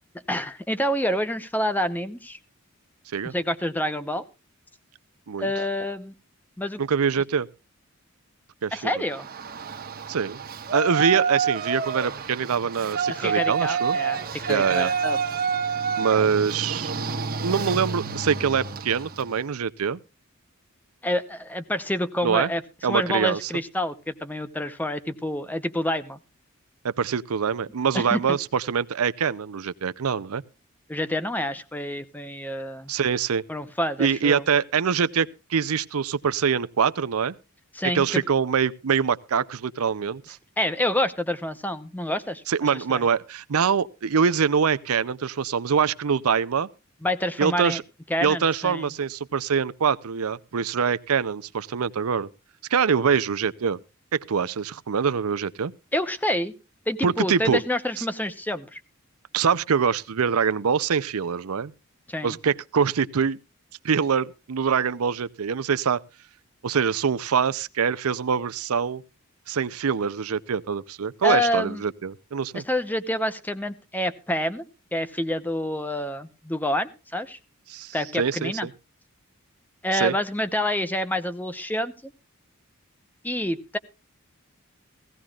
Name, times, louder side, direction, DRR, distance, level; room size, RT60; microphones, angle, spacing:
voice 1, 0.3-2.4 3.3-4.2 5.4-6.1 6.6-6.8 8.7-9.3 13.1-15.2 21.0-22.6 22.9-26.2 27.9-28.4 30.9-32.9 33.5-34.4 37.7-38.2 40.6-43.0 47.0-47.8 48.1-48.9 55.9-56.5 56.9-58.8 62.1-62.4 71.2-71.8 72.5-74.6 74.9-77.4 77.9-78.7 79.8-82.1 83.2-83.8, left 1 dB, 10° left, 0.8 m, -27 dB
voice 2, 6.8-7.5 8.6-8.8 10.1-10.4 10.7-14.0 14.5-14.9 16.0-16.9 17.4-20.0 22.2-22.5 22.8-23.5 26.8-30.4 32.9-33.4 34.0-37.3 37.9-40.4 42.5-46.7 47.4-47.8 48.2-52.3 52.7-53.8 54.1-55.7 57.0-57.6 58.0-58.1 59.3-61.7 62.2-63.4 63.8-66.0 66.6-69.0 69.5-72.6 77.7-78.7 79.9-80.2, right 6 dB, 85° right, 0.6 m, -24 dB
Yell, 9.1-19.3, right 5 dB, 45° right, 1.3 m, -28 dB
17.5 x 16.0 x 2.4 m
head